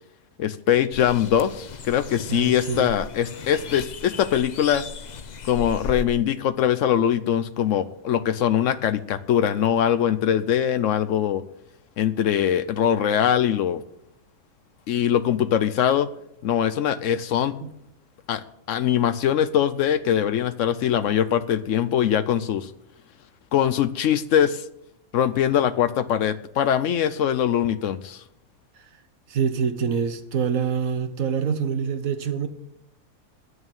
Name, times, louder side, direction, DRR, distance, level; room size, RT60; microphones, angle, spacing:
voice 1, 0.4-4.8 5.5-11.4 12.0-13.8 14.9-16.1 16.4-17.6 18.3-22.7 23.5-24.6 25.1-28.2, left 9 dB, 65° left, 0.9 m, -22 dB
sound 1, 0.9-6.0, left 4 dB, 45° left, 0.6 m, -36 dB
voice 2, 2.3-2.9 17.6-17.7 29.3-32.5, right 7 dB, 70° right, 1.4 m, -26 dB
11.0 x 6.5 x 9.0 m
omnidirectional pair, 1.5 m